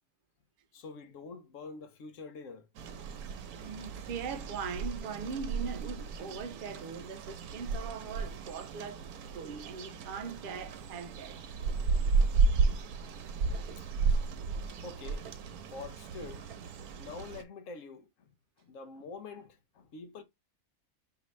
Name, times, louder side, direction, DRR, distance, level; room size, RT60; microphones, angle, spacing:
voice 1, 0.7-2.7 13.8-13.9 14.8-15.3 15.7-16.5 17.0-20.2, left 4 dB, 65° left, 1.0 m, -46 dB
sound 1, 2.7-17.4, right 4 dB, 90° right, 1.2 m, -33 dB
voice 2, 3.6-9.0 9.3-11.4, right 5 dB, 55° right, 0.6 m, -40 dB
4.9 x 2.7 x 3.1 m
omnidirectional pair, 1.5 m